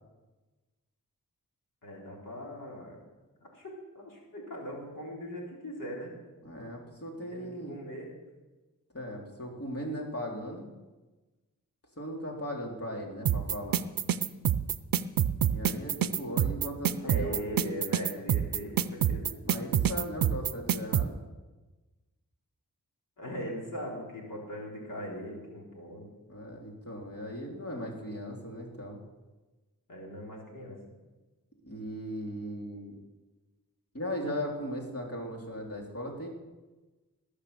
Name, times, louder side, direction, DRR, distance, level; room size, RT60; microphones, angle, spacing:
voice 1, 1.8-3.0 3.4-6.1 7.3-8.1 17.0-19.3 23.2-26.1 29.9-30.8, equal, 70° left, -2 dB, 4.1 m, -40 dB
voice 2, 6.4-7.8 8.9-10.7 12.0-13.8 15.5-17.4 19.4-21.2 26.3-29.0 31.6-33.0 33.9-36.3, equal, 45° left, -1 dB, 3.4 m, -38 dB
sound 1, 13.3-21.1, right 9 dB, 90° right, 0.5 m, -26 dB
19.5 x 6.7 x 6.9 m, 1.2 s
cardioid pair, 55°, 33 cm